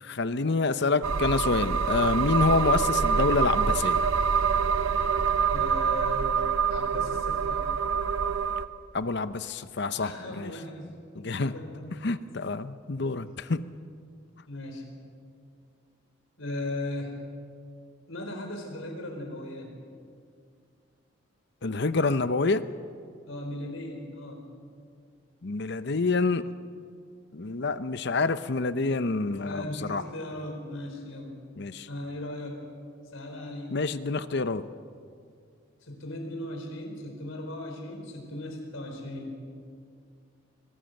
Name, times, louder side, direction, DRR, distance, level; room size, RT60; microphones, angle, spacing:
voice 1, 0.0-4.0 8.9-10.6 11.2-11.5 12.0-13.7 21.6-22.7 25.4-26.4 27.3-30.0 31.6-31.9 33.7-34.7, left 3 dB, 55° left, 13 dB, 0.7 m, -27 dB
sound 1, 1.0-8.7, right 6 dB, 80° right, 0.8 m, -26 dB
voice 2, 5.5-6.3 6.7-7.7 10.0-10.9 11.2-12.1 14.5-14.8 16.4-17.1 18.1-19.7 23.3-24.4 29.4-31.3 31.9-32.6 33.1-33.8 35.8-39.3, left 1 dB, 80° left, 3 dB, 4.5 m, -37 dB
24.5 x 18.0 x 7.9 m, 2.3 s
head